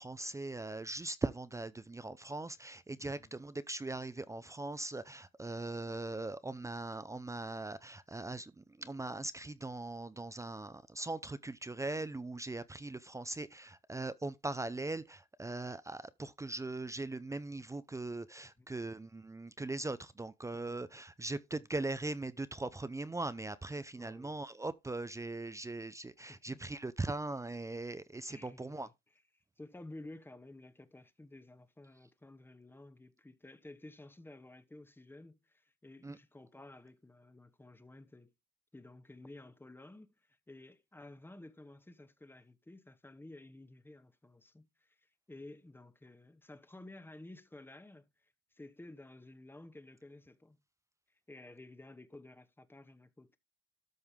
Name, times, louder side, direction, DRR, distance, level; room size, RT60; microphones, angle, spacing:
voice 1, 0.0-28.9 36.0-36.2, right 2 dB, 15° right, 0.6 m, -40 dB
voice 2, 3.0-3.3 18.6-18.8 24.0-24.3 26.3-26.6 28.3-28.9 29.3-38.3 38.7-45.0 45.3-50.6 51.3-53.4, left 2 dB, 10° left, 1.0 m, -53 dB
13.0 x 5.4 x 3.6 m
cardioid pair, 90°, 20 cm